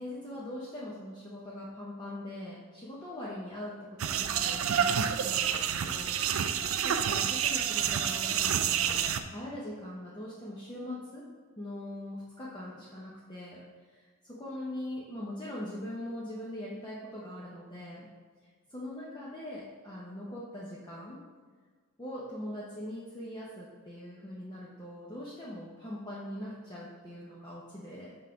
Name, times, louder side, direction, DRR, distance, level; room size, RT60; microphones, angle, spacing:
voice 1, 0.0-6.2 6.8-9.0 9.3-11.3 11.6-18.1 18.7-21.2 22.0-28.2, left 1 dB, 20° left, -7 dB, 0.7 m, -41 dB
sound 1, 4.0-9.2, right 8 dB, 65° right, 0.4 m, -29 dB
5.6 x 3.7 x 5.7 m, 1.5 s
head